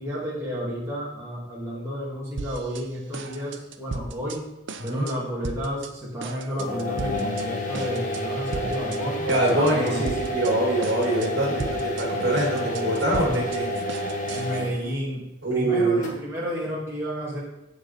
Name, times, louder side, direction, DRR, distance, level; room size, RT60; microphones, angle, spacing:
voice 1, 0.0-4.4 4.8-10.1 12.5-13.4 14.3-17.4, equal, 15° right, -7 dB, 2.7 m, -31 dB
sound 1, 2.4-2.9 3.1-4.4 4.7-5.2 5.4-5.9 6.2-7.5 7.7-8.2 8.5-9.0 9.3-10.5 10.8-11.3 11.6-14.6, right 4 dB, 80° right, 0.7 m, -36 dB
voice 2, 4.8-5.1 9.2-13.7 15.4-16.0, right 1 dB, 60° right, -2 dB, 2.1 m, -24 dB
sound 2, 6.6-14.9 16.0-16.1, equal, 40° left, 1.4 m, -29 dB
8.3 x 7.2 x 4.4 m, 0.89 s
head